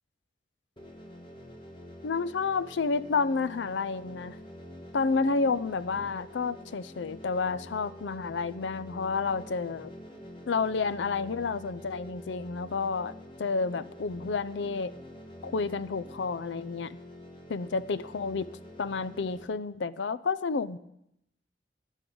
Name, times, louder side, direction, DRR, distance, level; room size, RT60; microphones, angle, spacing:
sound 1, 0.8-19.4, equal, 25° left, 1.5 m, -47 dB
voice 1, 2.0-4.4 4.9-9.9 10.5-13.1 13.4-14.9 15.4-17.0 17.5-18.5 18.8-20.8, left 4 dB, 85° left, 15 dB, 0.5 m, -30 dB
16.0 x 11.0 x 3.9 m, 0.79 s
head